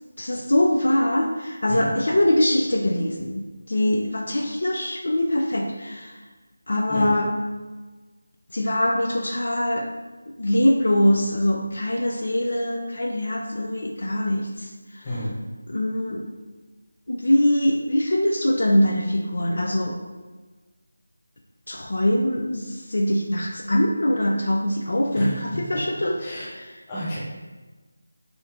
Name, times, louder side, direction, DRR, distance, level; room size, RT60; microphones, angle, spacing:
voice 1, 0.2-6.2 6.7-7.3 8.5-9.9 10.4-15.1 15.7-16.2 17.1-20.0 21.7-26.1 26.6-26.7, left 1 dB, 75° left, 1 dB, 0.5 m, -23 dB
voice 2, 15.0-15.4 25.1-25.6 26.2-26.5 26.9-27.2, equal, 20° left, -8 dB, 1.3 m, -30 dB
4.3 x 2.7 x 3.5 m, 1.3 s
figure-of-eight pair, 165°, 0 cm